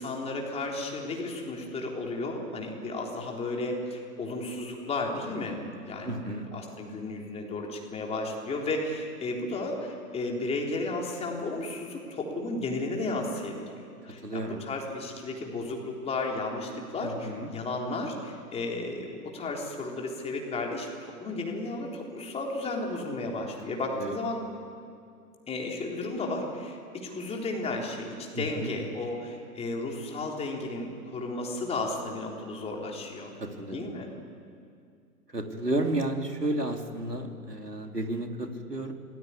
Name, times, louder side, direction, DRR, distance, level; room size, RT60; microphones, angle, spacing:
voice 1, 0.0-5.6 5.8-6.2 6.5-24.4 25.5-33.3 33.7-34.1, left 2 dB, 15° left, 0 dB, 3.8 m, -33 dB
voice 2, 6.0-6.5 14.2-14.6 17.0-17.5 24.0-24.2 28.3-28.7 33.4-33.9 35.3-38.9, right 1 dB, 85° right, 4 dB, 3.1 m, -32 dB
26.0 x 19.0 x 9.8 m, 2.4 s
figure-of-eight pair, 115°, 46 cm